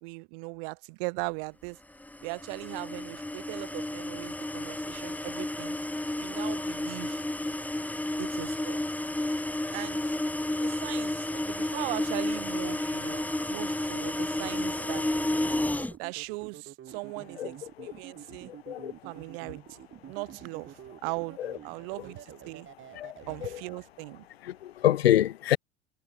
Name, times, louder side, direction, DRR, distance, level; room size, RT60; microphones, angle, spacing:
voice 1, 0.0-1.8 2.2-5.8 6.2-7.2 8.2-8.8 9.7-10.1 10.6-13.2 13.5-15.1 16.0-18.5 19.0-22.7 23.3-24.3, right 33 dB, 65° right, 2.3 m, -39 dB
sound 1, 2.0-15.9, left 1 dB, 5° left, 1.4 m, -31 dB
sound 2, 12.3-23.5, right 10 dB, 40° right, 3.6 m, -48 dB
voice 2, 18.5-18.9 21.4-21.5 22.9-23.1 23.4-23.5 24.4-25.6, left 12 dB, 80° left, 0.8 m, -26 dB
figure-of-eight pair, 70°, 30 cm